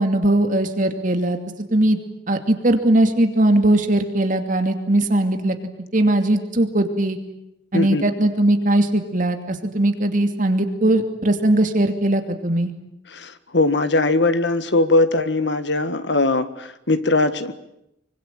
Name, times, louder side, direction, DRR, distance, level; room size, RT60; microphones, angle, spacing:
voice 1, 0.0-1.4 1.7-2.0 2.3-5.6 5.9-7.2 7.7-12.7, right 1 dB, 45° right, 7 dB, 2.7 m, -19 dB
voice 2, 13.1-17.5, left 2 dB, 65° left, 11 dB, 1.8 m, -20 dB
25.5 x 24.5 x 9.1 m, 0.82 s
head